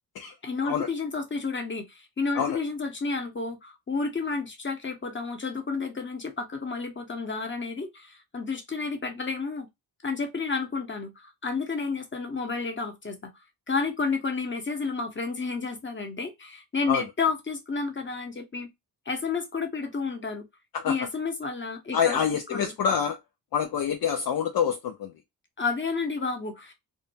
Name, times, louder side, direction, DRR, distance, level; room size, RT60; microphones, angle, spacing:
voice 1, 0.4-9.7 10.0-13.3 13.7-18.7 19.1-20.4 20.9-22.2 22.5-22.7 25.6-26.7, left 4 dB, 25° left, 1.0 m, -31 dB
voice 2, 21.9-23.2 23.5-25.1, left 7 dB, 55° left, 0.5 m, -26 dB
2.7 x 2.2 x 2.6 m
cardioid pair, 55°, 42 cm